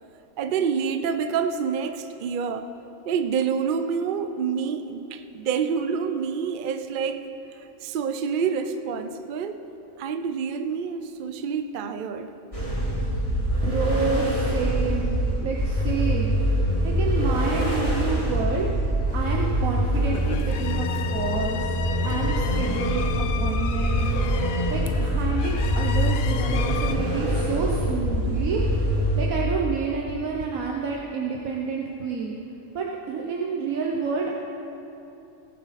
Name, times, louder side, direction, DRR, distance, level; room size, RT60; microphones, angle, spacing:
voice 1, 0.4-2.7 3.0-7.3 7.6-9.7 10.0-12.3, right 6 dB, 55° right, 8 dB, 0.6 m, -27 dB
sound 1, 12.5-29.2, equal, 25° left, 3.3 m, -24 dB
voice 2, 13.4-16.4 16.8-18.7 19.1-21.8 22.0-23.1 23.3-24.1 24.7-28.6 29.2-32.4 32.7-34.4, right 5 dB, 85° right, -1 dB, 1.3 m, -29 dB
sound 2, 18.3-18.4 18.8-18.9 19.3-19.4 19.8-19.9 20.3-20.4 20.8-20.9 21.4-21.5 21.9-22.0 22.3-22.4 22.9-23.0 23.4-24.4 25.3-26.4 27.4-27.5 27.7-28.1 28.3-28.4 29.4-29.5 29.7-29.8 30.1-30.2 30.4-30.5, left 9 dB, 60° left, 1.1 m, -40 dB
sound 3, 19.9-27.0, left 9 dB, 80° left, 1.0 m, -36 dB
18.5 x 8.4 x 4.2 m, 2.9 s
omnidirectional pair, 1.4 m